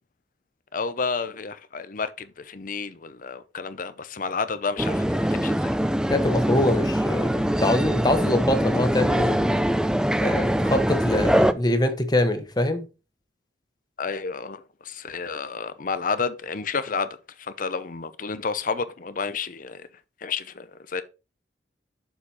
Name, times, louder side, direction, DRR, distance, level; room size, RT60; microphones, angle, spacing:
voice 1, 0.7-5.7 14.0-17.1 17.4-19.9 20.2-21.0, left 5 dB, 50° left, 0.7 m, -30 dB
sound 1, 4.8-11.5, equal, 5° right, 0.4 m, -23 dB
voice 2, 6.1-9.5 10.2-12.9, left 1 dB, 25° left, 1.1 m, -24 dB
7.1 x 4.3 x 4.8 m
head